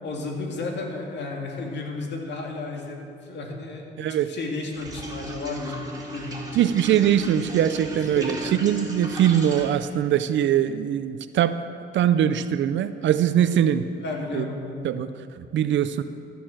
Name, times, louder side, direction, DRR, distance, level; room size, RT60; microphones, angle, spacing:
voice 1, 0.0-5.8 6.1-6.6 7.9-8.5 14.0-15.0, left 3 dB, 60° left, 1 dB, 2.2 m, -33 dB
voice 2, 4.0-4.3 6.5-8.4 8.6-11.6 11.9-13.9 14.3-14.5 14.8-15.1 15.4-16.0, right 10 dB, 70° right, 12 dB, 0.5 m, -22 dB
sound 1, 4.7-9.7, right 1 dB, 20° right, 2.6 m, -35 dB
14.0 x 6.6 x 7.5 m, 2.5 s
cardioid pair, 90°, 20 cm